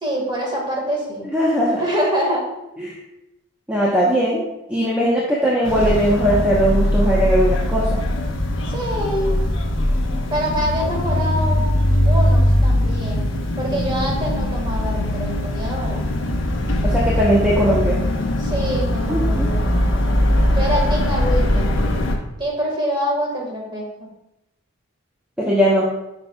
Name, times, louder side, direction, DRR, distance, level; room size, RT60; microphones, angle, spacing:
voice 1, 0.0-1.3 1.8-2.5 5.0-5.3 8.7-9.4 10.3-11.7 12.0-13.3 13.6-16.1 18.4-19.7 20.5-21.8 22.4-24.1, equal, 20° right, -2 dB, 1.7 m, -25 dB
voice 2, 1.3-1.8 2.8-3.0 3.7-4.4 4.7-8.0 16.8-18.0 19.1-19.5 25.4-25.9, equal, 5° right, -6 dB, 0.9 m, -19 dB
sound 1, 5.6-22.2, left 1 dB, 65° left, 0.9 m, -20 dB
9.6 x 5.4 x 2.3 m, 0.90 s
head